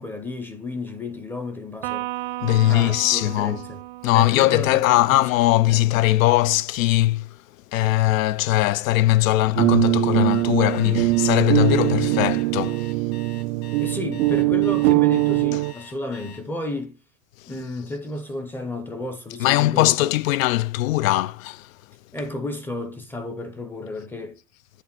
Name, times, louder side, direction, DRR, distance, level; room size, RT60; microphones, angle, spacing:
voice 1, 0.0-2.1 2.6-3.8 4.1-5.9 13.8-17.0 17.5-19.9 22.1-24.4, left 2 dB, 5° left, 0.6 m, -32 dB
Electric guitar, 1.8-5.4, right 17 dB, 45° right, 0.4 m, -35 dB
voice 2, 2.4-3.6 4.0-7.4 7.7-12.9 15.5-15.6 19.4-21.7, left 16 dB, 75° left, 0.6 m, -20 dB
sound 1, 9.6-15.7, right 20 dB, 85° right, 0.6 m, -21 dB
Alarm, 10.3-16.4, left 8 dB, 45° left, 2.1 m, -45 dB
8.4 x 3.4 x 5.9 m
supercardioid pair, 155°, 41 cm